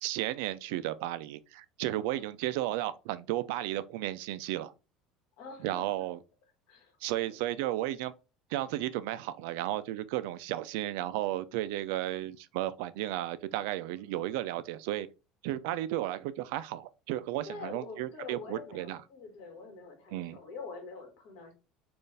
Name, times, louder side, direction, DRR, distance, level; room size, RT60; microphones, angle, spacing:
voice 1, 0.0-4.7 5.6-6.2 7.0-8.1 8.5-15.1 15.4-19.0 20.1-20.4, right 14 dB, 80° right, 0.4 m, -34 dB
voice 2, 1.8-2.2 5.4-6.0 6.7-7.0 7.3-7.4 13.9-14.1 17.4-21.5, left 4 dB, 70° left, 1.7 m, -45 dB
4.3 x 2.5 x 3.3 m
cardioid pair, 165°, 0 cm